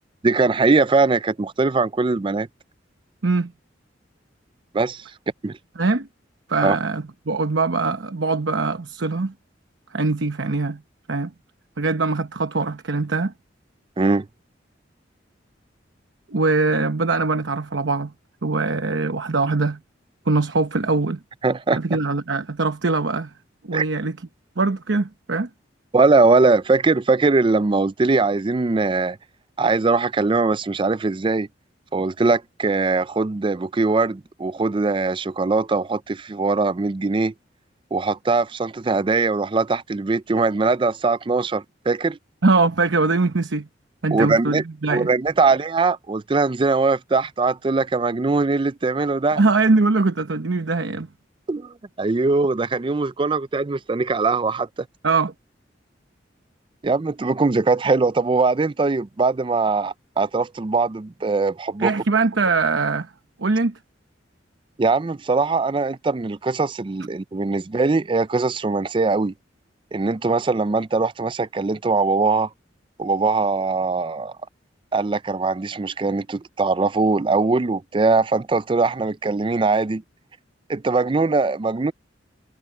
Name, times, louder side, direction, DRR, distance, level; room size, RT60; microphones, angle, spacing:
voice 1, 0.2-2.5 4.7-5.1 5.4-5.6 6.6-6.8 14.0-14.3 21.4-21.8 23.7-23.9 25.9-29.2 29.6-31.5 31.9-37.3 37.9-42.2 44.1-44.6 44.9-49.4 51.5-54.7 56.8-61.9 64.8-69.3 69.9-72.5 73.0-74.3 74.9-80.0 80.7-81.9, right 3 dB, 25° right, 0.4 m, -21 dB
voice 2, 6.5-9.3 9.9-10.8 11.1-11.3 11.8-13.3 16.3-18.1 18.4-19.8 20.3-21.2 21.7-23.3 23.6-24.2 24.6-25.5 42.4-43.7 44.0-45.1 49.3-51.1 55.0-55.3 61.8-63.1 63.4-63.8, right 3 dB, 75° right, 1.0 m, -22 dB
head